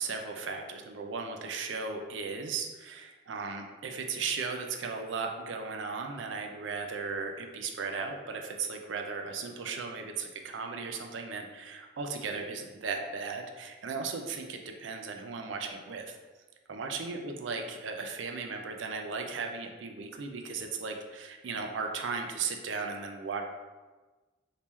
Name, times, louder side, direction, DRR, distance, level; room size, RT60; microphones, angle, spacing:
voice 1, 0.0-16.2 16.7-23.4, right 4 dB, 75° right, 3 dB, 0.4 m, -36 dB
3.0 x 2.8 x 3.5 m, 1.3 s
head